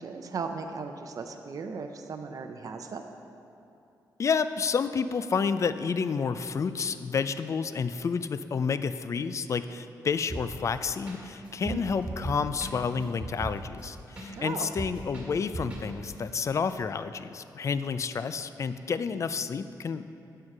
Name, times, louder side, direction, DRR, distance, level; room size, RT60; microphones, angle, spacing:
voice 1, 0.0-3.0 11.6-11.8 14.3-14.7, right 5 dB, 55° right, 5 dB, 0.6 m, -37 dB
voice 2, 4.2-20.1, left 5 dB, 45° left, 12 dB, 0.4 m, -30 dB
sound 1, 10.3-10.7 11.1-11.2 11.5-14.3 14.6-16.1, right 2 dB, 15° right, 2.3 m, -37 dB
9.4 x 5.7 x 6.5 m, 2.7 s
cardioid pair, 105°, 7 cm